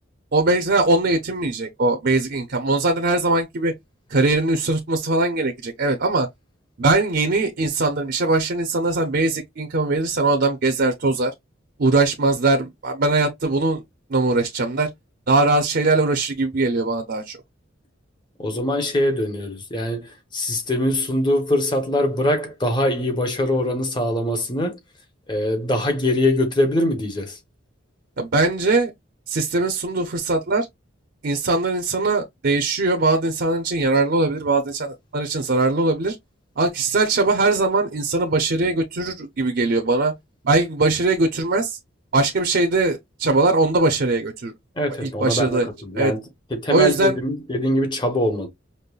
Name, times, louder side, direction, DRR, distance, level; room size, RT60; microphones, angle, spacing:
voice 1, 0.3-3.7 4.1-6.3 6.8-11.3 11.8-13.8 14.1-14.9 15.3-17.4 28.2-28.9 29.3-30.7 31.2-36.2 36.6-40.1 40.4-41.8 42.1-44.5 45.0-45.7 45.9-46.1 46.7-47.2, right 2 dB, 55° right, 0.6 m, -21 dB
voice 2, 18.4-24.8 25.3-27.4 44.8-46.2 46.5-48.5, left 1 dB, 20° left, 0.9 m, -23 dB
5.3 x 2.1 x 2.3 m
head